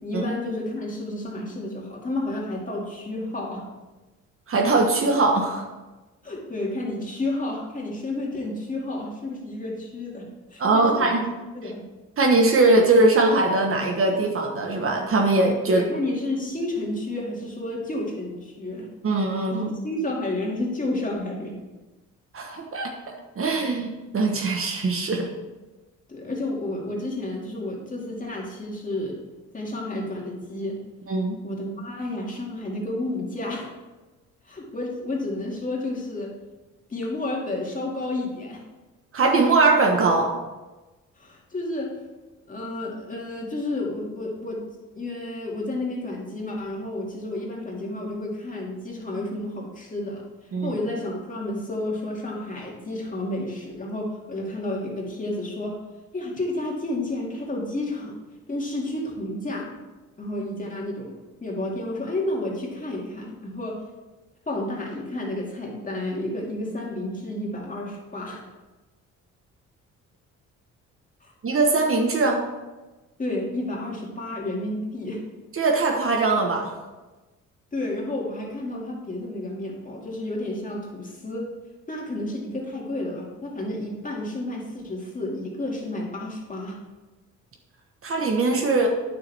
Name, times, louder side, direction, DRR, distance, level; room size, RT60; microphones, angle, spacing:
voice 1, 0.0-3.7 6.2-11.2 11.5-11.8 15.7-18.9 19.5-21.6 26.1-29.2 29.5-30.8 31.4-33.7 34.5-36.3 36.9-38.6 41.2-42.0 42.5-44.6 44.9-50.2 50.6-55.8 56.1-58.2 58.5-59.7 60.2-61.1 61.4-63.8 64.5-68.5 71.2-71.3 73.2-75.2 77.7-81.5 81.9-86.8, left 1 dB, 25° left, -2 dB, 2.2 m, -31 dB
voice 2, 4.5-5.7 10.6-11.3 12.2-15.8 19.0-19.7 22.3-22.9 23.4-25.3 31.1-31.4 39.1-40.3 50.5-50.7 71.4-72.4 75.6-76.7 88.0-88.9, right 3 dB, 45° right, 2 dB, 1.2 m, -21 dB
9.2 x 6.8 x 3.5 m, 1.2 s
cardioid pair, 90°, 30 cm